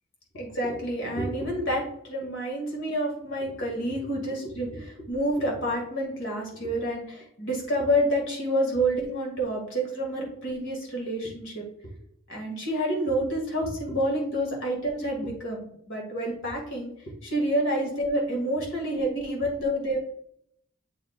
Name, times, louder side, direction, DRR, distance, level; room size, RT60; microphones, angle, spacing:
voice 1, 0.3-11.9 12.3-20.0, equal, 70° left, -1 dB, 2.2 m, -28 dB
7.8 x 5.1 x 2.4 m, 0.68 s
head